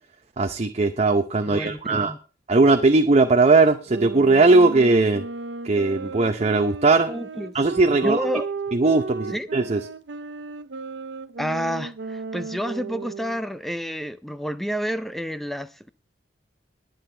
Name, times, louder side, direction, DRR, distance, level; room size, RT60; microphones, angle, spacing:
voice 1, 0.4-2.1 2.5-5.2 5.6-7.1 7.5-8.3 8.7-9.8, right 3 dB, 35° right, 0.7 m, -19 dB
voice 2, 1.5-2.2 7.1-7.5 8.0-8.5 9.3-9.5 11.4-15.9, equal, ahead, 0.5 m, -29 dB
sound 1, 3.9-13.5, right 4 dB, 75° right, 0.6 m, -34 dB
21.0 x 7.8 x 3.3 m
head